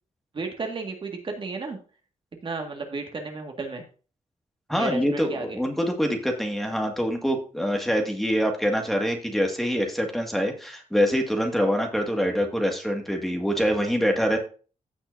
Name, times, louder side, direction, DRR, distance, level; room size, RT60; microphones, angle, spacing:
voice 1, 0.3-1.8 2.4-3.8 4.8-5.6, right 3 dB, 40° right, 3 dB, 1.9 m, -33 dB
voice 2, 4.7-14.4, equal, ahead, 3 dB, 2.0 m, -25 dB
15.5 x 6.1 x 2.7 m, 0.36 s
wide cardioid pair, 150°, 13 cm